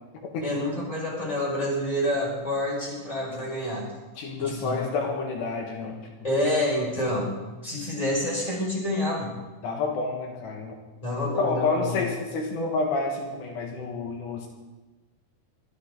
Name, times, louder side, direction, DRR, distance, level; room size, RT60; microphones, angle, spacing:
voice 1, 0.4-3.9 4.4-4.8 6.2-9.4 11.0-12.0, left 1 dB, 10° left, -4 dB, 5.5 m, -28 dB
voice 2, 4.2-6.0 9.6-10.8 11.4-14.5, left 4 dB, 75° left, 1 dB, 3.9 m, -29 dB
22.5 x 14.0 x 3.9 m, 1.2 s
omnidirectional pair, 5.0 m